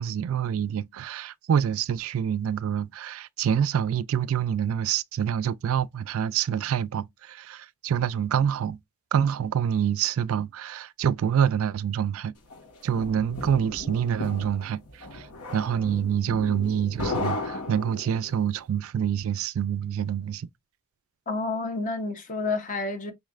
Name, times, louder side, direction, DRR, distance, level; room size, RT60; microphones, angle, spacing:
voice 1, 0.0-8.8 9.1-12.3 12.8-15.3 15.5-20.5, right 8 dB, 65° right, 0.3 m, -26 dB
sound 1, 12.5-18.4, left 2 dB, 85° left, 1.5 m, -35 dB
voice 2, 21.3-23.1, left 3 dB, 35° left, 0.9 m, -29 dB
5.3 x 3.2 x 2.3 m
head